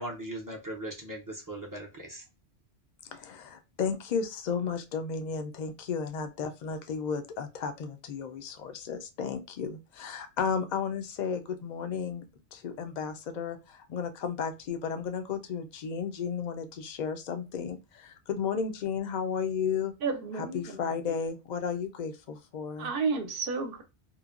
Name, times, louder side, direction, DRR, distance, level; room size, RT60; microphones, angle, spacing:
voice 1, 0.0-2.2, right 1 dB, 25° right, 0.4 m, -39 dB
voice 2, 3.1-12.2 12.5-19.9 20.3-22.9, left 6 dB, 55° left, 0.5 m, -33 dB
voice 3, 20.0-20.9 22.8-23.8, right 4 dB, 60° right, 0.8 m, -31 dB
3.0 x 2.2 x 2.3 m
omnidirectional pair, 1.1 m